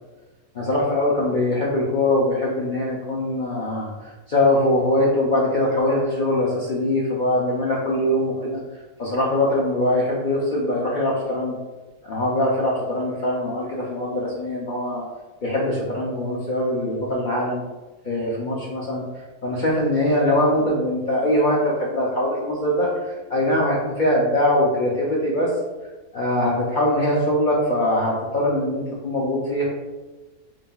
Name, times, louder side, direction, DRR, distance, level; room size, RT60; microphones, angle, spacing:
voice 1, 0.5-3.9 4.3-8.6 9.0-11.5 12.0-15.0 15.4-17.6 18.0-19.0 19.4-25.5 26.1-29.6, left 1 dB, 65° left, -5 dB, 0.4 m, -22 dB
5.4 x 2.8 x 2.2 m, 1.2 s
omnidirectional pair, 1.5 m